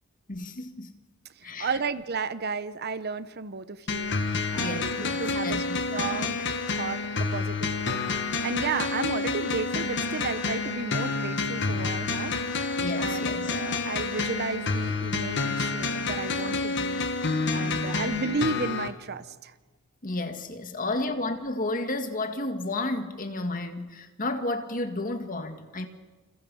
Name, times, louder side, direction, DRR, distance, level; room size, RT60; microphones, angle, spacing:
voice 1, 0.3-1.0 1.4-1.7 4.6-5.2 5.4-6.1 12.8-13.6 20.0-25.9, left 2 dB, 40° left, 1.9 m, -32 dB
voice 2, 1.4-4.2 4.5-12.7 13.0-17.0 17.5-19.5, right 4 dB, 50° right, 0.9 m, -33 dB
sound 1, 3.9-18.9, left 3 dB, 55° left, 1.7 m, -29 dB
28.5 x 27.5 x 5.6 m
head